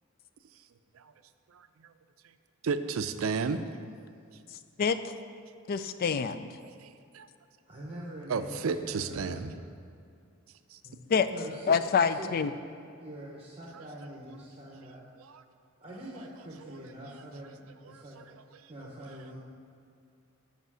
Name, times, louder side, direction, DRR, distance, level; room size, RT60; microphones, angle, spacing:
voice 1, 2.6-3.6 6.8-6.9 7.1-7.3 8.3-9.5 10.7-10.8 15.2-15.4 17.9-18.0, right 5 dB, 70° right, 10 dB, 0.4 m, -32 dB
voice 2, 4.8-5.1 5.7-6.5 11.1-11.3 11.7-12.5, left 6 dB, 45° left, 12 dB, 0.3 m, -26 dB
voice 3, 7.7-9.5 10.8-11.0 11.3-12.3 13.0-15.0 15.8-18.3 18.7-19.4, right 1 dB, 30° right, -4 dB, 0.9 m, -44 dB
8.0 x 5.2 x 6.2 m, 2.4 s
head